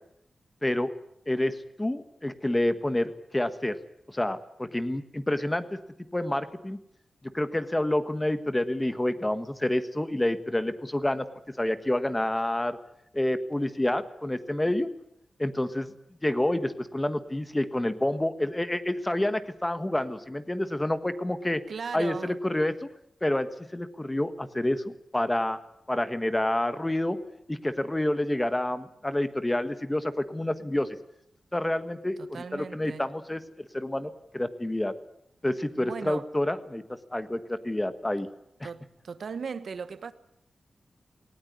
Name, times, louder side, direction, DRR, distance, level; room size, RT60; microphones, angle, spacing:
voice 1, 1.3-3.8 4.1-5.8 6.1-6.8 7.3-12.8 13.1-14.9 15.4-15.9 16.2-21.6 21.9-22.8 23.2-25.6 25.9-27.2 27.5-31.0 31.5-32.2 32.5-33.4 33.7-34.9 35.4-36.8 37.1-38.3 38.6-38.7, left 1 dB, 15° left, 1.5 m, -28 dB
voice 2, 21.7-22.4 32.2-33.1 35.8-36.3 38.6-40.1, right 5 dB, 75° right, 1.2 m, -37 dB
19.0 x 18.0 x 9.8 m
wide cardioid pair, 95°, 0 cm